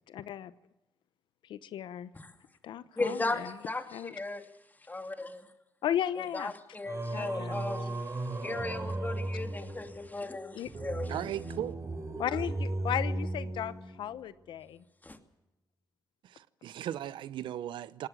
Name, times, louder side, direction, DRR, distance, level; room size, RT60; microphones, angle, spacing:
voice 1, 0.1-0.5 1.4-2.1 2.6-3.6 3.9-4.2 5.8-6.5 7.1-7.6 10.5-10.7 12.2-14.8, left 10 dB, 80° left, 0.9 m, -35 dB
voice 2, 3.0-4.5 4.9-5.5 6.3-11.1 15.0-15.2, left 2 dB, 20° left, 2.6 m, -36 dB
Singing, 6.9-14.2, right 2 dB, 35° right, 4.0 m, -36 dB
voice 3, 11.1-11.8 16.2-18.1, right 11 dB, 80° right, 0.7 m, -37 dB
19.0 x 18.5 x 7.5 m
cardioid pair, 70°, 8 cm